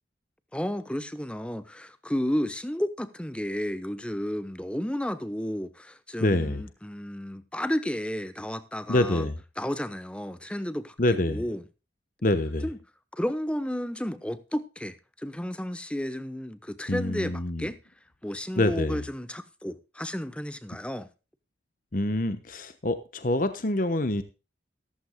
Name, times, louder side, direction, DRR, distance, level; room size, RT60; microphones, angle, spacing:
voice 1, 0.5-9.3 9.6-11.6 12.6-12.8 13.1-17.8 18.2-21.1, equal, 5° left, 0.9 m, -32 dB
voice 2, 6.2-6.6 8.9-9.4 11.0-11.4 12.2-12.6 16.9-17.7 18.6-19.0 21.9-24.2, left 1 dB, 45° left, 1.0 m, -26 dB
14.5 x 14.5 x 2.2 m
head